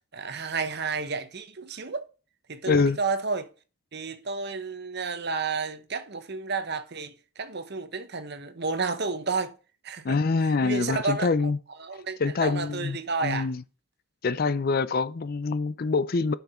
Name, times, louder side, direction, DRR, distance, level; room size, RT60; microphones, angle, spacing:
voice 1, 0.1-2.1 2.5-3.5 3.9-9.5 9.8-11.5 11.8-13.5, right 4 dB, 50° right, 1.0 m, -31 dB
voice 2, 2.7-3.0 10.0-11.6 12.2-13.6 14.2-16.3, left 4 dB, 40° left, 0.4 m, -25 dB
10.5 x 5.9 x 4.3 m
head